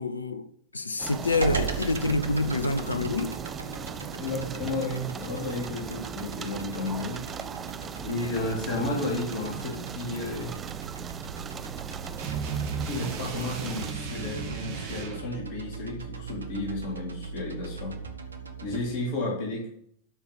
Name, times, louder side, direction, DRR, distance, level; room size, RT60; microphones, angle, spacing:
voice 1, 0.0-3.4, left 3 dB, 80° left, 0.7 m, -27 dB
sound 1, 1.0-13.9, right 7 dB, 25° right, 0.6 m, -39 dB
sound 2, 1.4-18.9, right 5 dB, 75° right, 1.2 m, -38 dB
voice 2, 4.2-7.2 8.0-10.5 12.8-18.0 18.6-19.7, left 2 dB, 50° left, 3.3 m, -32 dB
sound 3, 12.2-15.3, right 6 dB, 45° right, 1.9 m, -35 dB
12.5 x 5.9 x 5.5 m
figure-of-eight pair, 90°, 0 cm